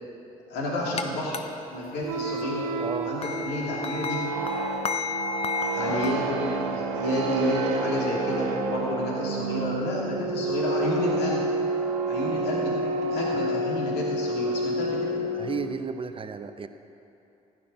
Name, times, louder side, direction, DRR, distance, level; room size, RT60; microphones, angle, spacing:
voice 1, 0.5-1.4 1.7-2.6 3.0-4.2 5.7-11.4 12.1-15.1, left 1 dB, 65° left, -4 dB, 2.7 m, -30 dB
sound 1, 1.0-1.1 1.3-1.4 3.2-6.1, left 5 dB, 35° left, 0.7 m, -31 dB
sound 2, 2.0-15.7, right 2 dB, 75° right, 0.9 m, -29 dB
voice 2, 2.8-3.2 15.3-16.7, right 5 dB, 30° right, 9 dB, 0.8 m, -33 dB
15.0 x 9.8 x 4.8 m, 2.8 s
figure-of-eight pair, 50°, 18 cm